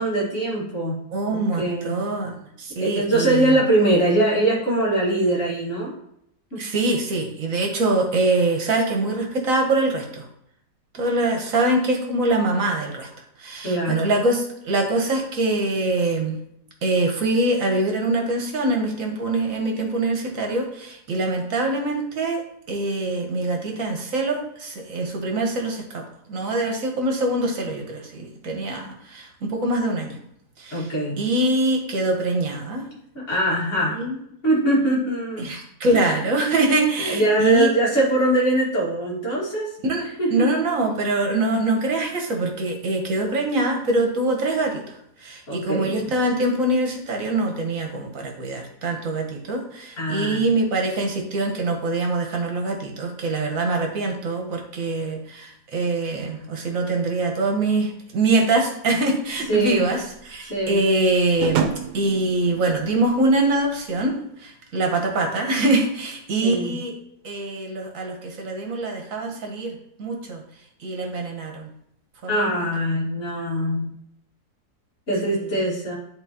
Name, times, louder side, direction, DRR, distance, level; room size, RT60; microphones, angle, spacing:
voice 1, 0.0-1.0 1.5-2.0 2.8-5.9 6.5-6.6 13.6-14.1 30.7-31.2 33.1-34.0 34.4-35.5 35.9-36.2 37.1-39.7 40.0-40.5 45.5-45.9 50.0-50.5 59.5-59.9 60.5-60.8 66.4-66.8 72.3-73.9 75.1-76.0, right 1 dB, 50° left, -7 dB, 2.4 m, -22 dB
voice 2, 1.1-3.5 6.6-10.2 10.9-13.1 13.4-16.4 16.8-22.4 22.7-26.0 26.3-28.8 29.1-30.1 30.6-30.9 31.2-32.8 33.9-34.2 35.4-37.7 39.8-44.8 45.2-61.6 61.9-64.1 64.4-66.9 67.2-70.4 70.8-71.7 72.2-72.6, right 2 dB, 60° right, 2 dB, 1.4 m, -24 dB
sound 1, 59.4-64.1, right 7 dB, 85° right, 1.3 m, -31 dB
10.5 x 3.9 x 2.9 m, 0.74 s
omnidirectional pair, 1.7 m